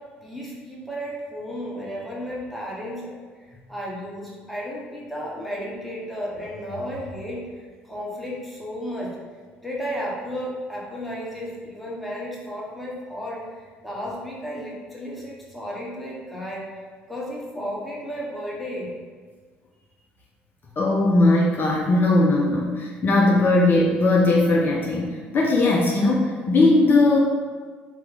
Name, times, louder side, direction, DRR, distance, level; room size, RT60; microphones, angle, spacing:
voice 1, 0.0-3.2 3.5-9.2 9.6-16.7 17.1-18.9, equal, ahead, -5 dB, 1.1 m, -33 dB
voice 2, 20.8-27.2, left 2 dB, 45° left, -3 dB, 0.5 m, -19 dB
3.0 x 2.2 x 3.7 m, 1.5 s
hypercardioid pair, 65°, 5 cm